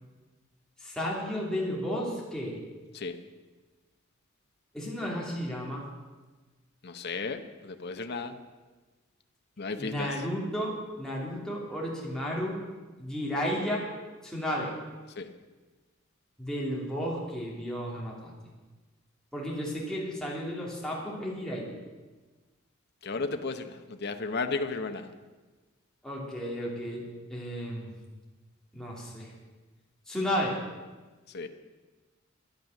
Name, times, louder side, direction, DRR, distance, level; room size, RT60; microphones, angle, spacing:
voice 1, 0.8-2.6 4.7-5.8 9.8-12.6 13.0-13.9 14.2-14.7 16.4-18.3 19.3-21.7 26.0-27.0 27.3-27.9 28.7-29.3 30.1-30.5, equal, 5° left, -4 dB, 2.9 m, -33 dB
voice 2, 6.8-8.4 9.6-10.2 15.2-15.3 23.0-25.1 31.3-31.5, left 4 dB, 50° left, 7 dB, 0.8 m, -34 dB
11.5 x 10.5 x 6.6 m, 1.3 s
head